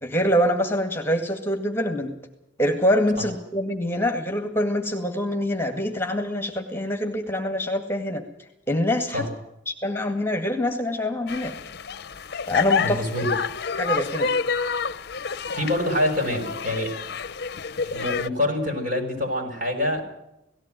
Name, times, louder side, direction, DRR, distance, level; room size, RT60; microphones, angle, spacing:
voice 1, 0.0-2.1 2.6-8.2 8.7-9.2 9.7-11.5 12.5-13.0 13.7-14.3, equal, 15° left, 4 dB, 2.0 m, -25 dB
sound 1, 11.3-18.3, left 5 dB, 60° left, 0.7 m, -28 dB
voice 2, 12.8-13.3 15.5-16.9 17.8-20.0, left 1 dB, 50° right, 3 dB, 6.4 m, -26 dB
18.0 x 15.5 x 9.2 m, 0.86 s
head